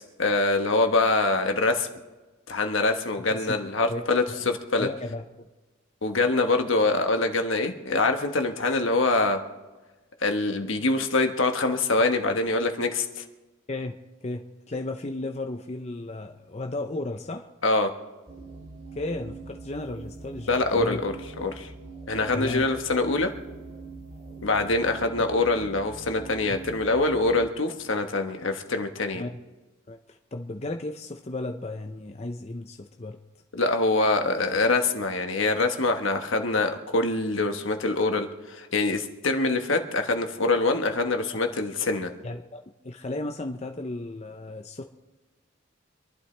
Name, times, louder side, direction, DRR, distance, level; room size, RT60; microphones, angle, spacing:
voice 1, 0.2-1.9 2.5-4.9 6.0-9.4 10.2-13.2 17.6-17.9 20.5-21.7 22.1-23.3 24.4-29.2 33.5-42.1, left 3 dB, 70° left, 5 dB, 1.4 m, -24 dB
voice 2, 4.8-5.2 13.7-17.5 18.9-21.0 22.3-22.7 26.5-26.6 29.1-29.4 29.9-33.2 42.2-44.8, left 2 dB, 30° left, 4 dB, 0.6 m, -34 dB
sound 1, 18.3-27.5, right 3 dB, 35° right, 2.8 m, -43 dB
26.0 x 11.5 x 3.3 m, 1.2 s
head